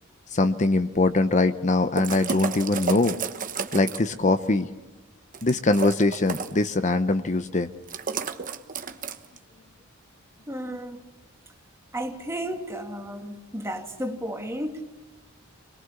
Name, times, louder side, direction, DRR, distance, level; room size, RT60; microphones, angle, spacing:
voice 1, 0.3-3.2 3.7-4.7 5.4-7.7, left 2 dB, 35° left, 10 dB, 0.7 m, -22 dB
sound 1, 2.0-4.2 5.3-6.7 7.9-9.4, right 5 dB, 40° right, 1.2 m, -31 dB
voice 2, 10.5-11.0 11.9-14.8, right 1 dB, 15° right, 5 dB, 2.1 m, -33 dB
25.0 x 21.5 x 7.2 m, 1.1 s
head